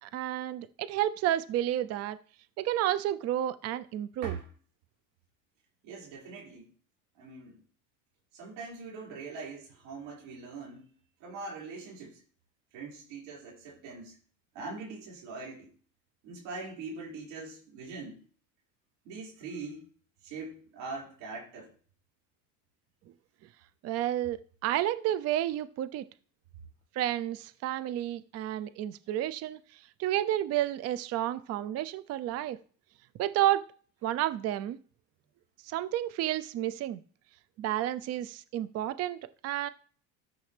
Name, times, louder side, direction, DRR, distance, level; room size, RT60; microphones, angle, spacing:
voice 1, 0.0-2.2 2.6-4.3 23.8-26.0 26.9-32.6 33.2-33.6 34.0-34.8 35.6-37.0 37.6-39.7, right 13 dB, 45° right, 15 dB, 0.5 m, -31 dB
voice 2, 5.8-6.7 7.1-7.6 8.3-10.9 11.2-12.2 12.7-14.2 14.5-15.7 16.2-18.2 19.0-19.9 20.2-21.7, right 4 dB, 90° right, -4 dB, 5.2 m, -42 dB
13.5 x 6.9 x 3.3 m, 0.43 s
cardioid pair, 130°, 36 cm